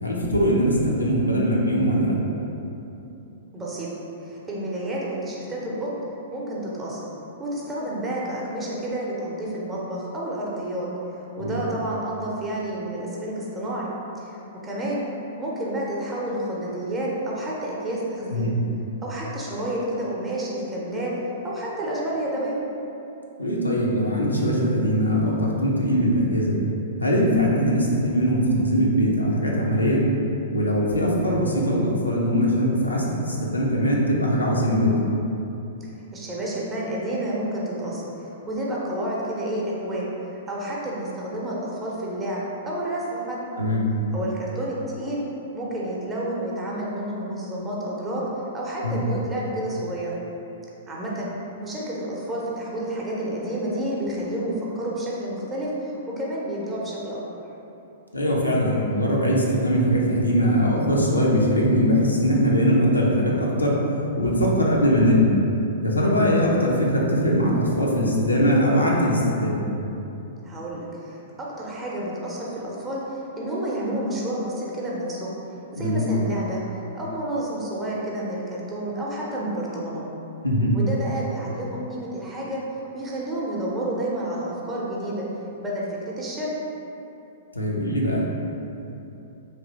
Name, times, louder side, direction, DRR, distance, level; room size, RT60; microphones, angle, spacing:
voice 1, 0.0-2.1 11.4-11.6 18.3-18.5 23.4-26.6 27.0-30.0 30.5-35.0 43.6-43.9 48.8-49.0 58.1-63.8 64.2-65.3 65.8-69.6 75.8-76.0 80.4-80.7 87.6-88.2, equal, 85° left, -4 dB, 0.5 m, -21 dB
voice 2, 3.5-3.9 4.2-5.9 6.3-7.0 7.4-10.9 11.2-15.0 15.4-18.5 19.0-21.1 21.4-22.6 35.8-40.0 40.5-43.4 44.1-45.2 45.5-48.2 48.5-50.1 50.9-51.3 51.6-57.2 70.4-75.3 75.7-76.6 76.9-80.1 80.7-82.6 82.9-85.3 85.6-86.5, right 1 dB, 15° right, -5 dB, 0.6 m, -30 dB
3.3 x 2.6 x 2.9 m, 2.9 s
figure-of-eight pair, 105°, 0 cm